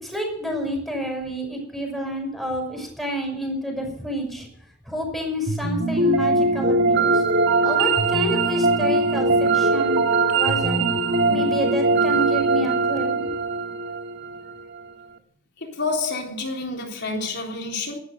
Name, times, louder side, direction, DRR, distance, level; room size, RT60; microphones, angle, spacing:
voice 1, 0.0-4.5 4.9-7.2 7.6-10.0 10.3-10.8 11.3-13.2, equal, ahead, 6.2 m, -29 dB
sound 1, 5.5-14.6, right 3 dB, 55° right, 2.0 m, -21 dB
voice 2, 15.6-18.0, left 3 dB, 55° left, 3.8 m, -28 dB
13.0 x 13.0 x 7.9 m
head